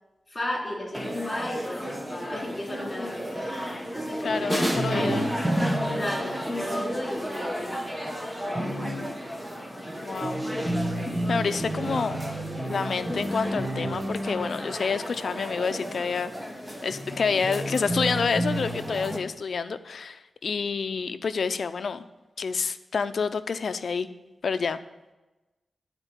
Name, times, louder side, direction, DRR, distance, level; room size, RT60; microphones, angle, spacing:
voice 1, 0.3-3.5 3.9-5.4 5.9-7.9 8.4-8.9, left 1 dB, 25° left, -1 dB, 3.7 m, -34 dB
sound 1, 0.9-19.2, equal, 10° right, 1.3 m, -31 dB
voice 2, 4.2-5.2 10.0-10.4 11.3-12.2 12.6-16.3 16.8-22.0 22.4-24.1 24.4-24.8, left 5 dB, 70° left, 11 dB, 0.6 m, -28 dB
12.0 x 4.5 x 8.3 m, 1.1 s
wide cardioid pair, 80°, 0 cm